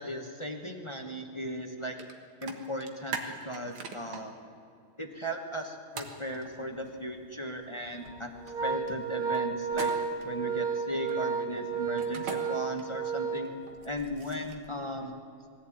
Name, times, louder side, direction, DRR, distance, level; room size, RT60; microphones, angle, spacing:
voice 1, 0.0-2.0 2.4-4.3 5.0-8.3 8.6-9.9 10.2-13.5 13.8-15.1, equal, 20° left, 4 dB, 0.9 m, -37 dB
sound 1, 2.0-2.1 2.4-4.2 6.0-6.2 9.7-10.2 12.0-12.4 13.7-14.7, right 5 dB, 70° right, 2.4 m, -39 dB
Organ, 6.3-6.5 6.9-7.0 7.8-14.1, right 5 dB, 45° right, 2.0 m, -33 dB
21.0 x 15.5 x 8.8 m, 2.5 s
omnidirectional pair, 2.3 m